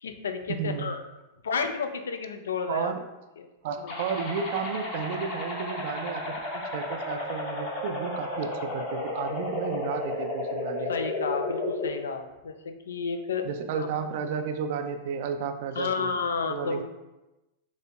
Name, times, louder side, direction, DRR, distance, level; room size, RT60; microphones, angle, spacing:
voice 1, 0.0-1.0 1.4-2.9 3.4-3.5 3.8-4.0 10.9-13.5 13.8-13.9 15.8-16.8, left 5 dB, 90° left, 8 dB, 0.3 m, -31 dB
voice 2, 0.6-0.9 2.7-3.0 3.6-6.3 6.7-10.9 13.4-16.1 16.5-16.8, right 6 dB, 65° right, 7 dB, 0.3 m, -32 dB
sound 1, 3.9-11.9, left 2 dB, 50° left, 0.9 m, -33 dB
4.0 x 2.8 x 2.2 m, 1.0 s
hypercardioid pair, 115°, 0 cm